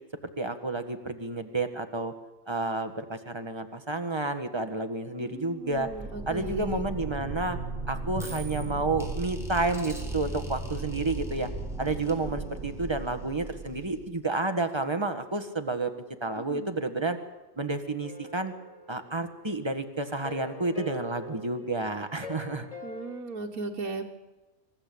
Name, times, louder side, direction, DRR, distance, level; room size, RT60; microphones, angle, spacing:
voice 1, 0.4-2.1 2.5-5.9 6.3-7.6 7.9-11.5 11.8-15.9 16.2-17.2 17.6-18.5 18.9-22.7, right 2 dB, 20° right, 7 dB, 1.6 m, -30 dB
voice 2, 5.2-6.9 16.5-16.7 22.8-24.0, right 3 dB, 75° right, 0 dB, 1.9 m, -37 dB
sound 1, 5.7-14.2, right 2 dB, ahead, 4.1 m, -36 dB
sound 2, 18.0-19.6 20.1-23.2, equal, 25° left, 2.0 m, -43 dB
26.5 x 14.5 x 8.6 m, 1.2 s
omnidirectional pair, 1.5 m